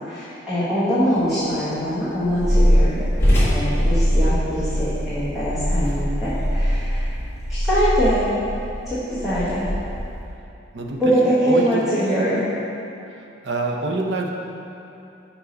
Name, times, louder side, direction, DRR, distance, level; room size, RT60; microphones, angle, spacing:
voice 1, 0.1-3.0 3.4-7.0 7.5-8.3 8.9-9.6 11.0-12.4, equal, ahead, -14 dB, 1.2 m, -23 dB
sound 1, 1.1-7.4, equal, 15° left, 1.5 m, -28 dB
Purr, 2.2-10.3, equal, 20° right, 0.9 m, -22 dB
voice 2, 3.3-3.6 10.7-11.9 13.4-14.3, right 2 dB, 65° right, 1 dB, 0.6 m, -27 dB
5.4 x 4.8 x 5.1 m, 2.7 s
head